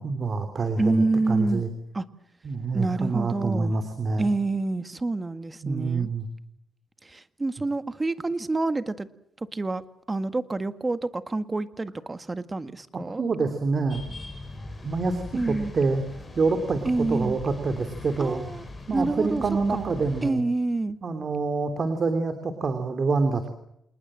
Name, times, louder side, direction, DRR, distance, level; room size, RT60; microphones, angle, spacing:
voice 1, 0.0-1.7 2.4-4.3 5.6-6.3 12.9-14.1 14.8-16.0 16.4-18.4 18.9-20.4 21.0-23.5, right 4 dB, 40° right, 8 dB, 3.1 m, -26 dB
voice 2, 0.8-1.7 1.9-2.1 2.7-3.7 4.2-6.1 7.1-9.1 9.5-9.8 10.1-13.2 15.3-15.7 16.9-17.4 18.2-18.6 18.9-19.4 19.7-19.9 20.2-21.0, right 2 dB, 20° right, 11 dB, 1.8 m, -27 dB
sound 1, 13.9-20.3, left 3 dB, 20° left, 7.0 m, -41 dB
28.0 x 20.0 x 7.6 m, 0.77 s
cardioid pair, 90°, 0 cm